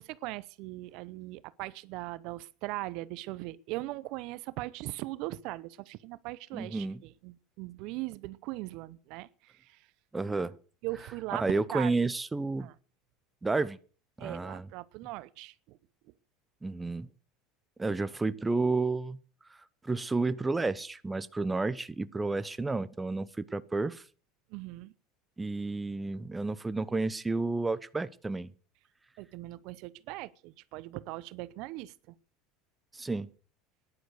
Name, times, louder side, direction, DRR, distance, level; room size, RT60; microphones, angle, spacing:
voice 1, 0.0-9.9 10.8-11.9 12.6-12.8 14.2-15.8 16.0-16.1 24.5-24.9 29.2-32.2, right 19 dB, 60° right, 0.7 m, -40 dB
voice 2, 6.5-7.0 10.1-10.6 11.3-12.7 13.4-13.8 14.2-14.7 16.6-17.1 17.8-19.2 19.5-19.6 19.8-24.0 25.4-28.5 32.9-33.3, right 3 dB, 10° right, 0.8 m, -31 dB
14.5 x 10.5 x 6.6 m
supercardioid pair, 125°, 0 cm